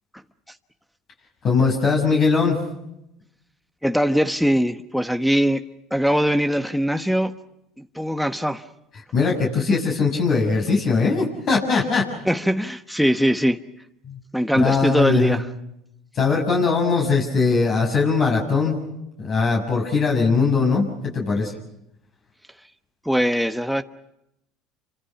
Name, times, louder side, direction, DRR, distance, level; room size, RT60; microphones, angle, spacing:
voice 1, 1.4-2.6 9.1-12.1 14.0-14.2 14.5-15.4 16.1-18.9 19.2-21.5, left 4 dB, 45° left, 6.7 m, -20 dB
voice 2, 3.8-5.6 5.9-7.4 7.8-8.6 12.2-13.6 14.3-15.4 23.0-23.8, equal, ahead, 1.2 m, -21 dB
29.0 x 25.5 x 5.9 m
supercardioid pair, 90°, 0 cm